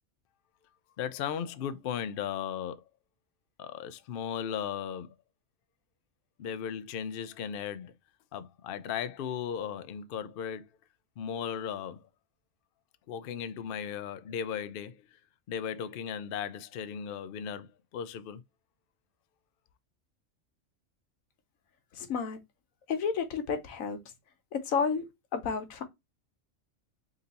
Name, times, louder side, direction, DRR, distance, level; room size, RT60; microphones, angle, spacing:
voice 1, 1.0-2.8 3.6-5.1 6.4-7.9 8.3-10.7 11.2-12.1 13.1-15.1 15.5-18.4, left 8 dB, 65° left, 0.5 m, -36 dB
voice 2, 21.9-22.4 22.9-24.0 24.5-25.8, left 6 dB, 85° left, 1.2 m, -31 dB
3.9 x 2.6 x 4.0 m
omnidirectional pair, 1.4 m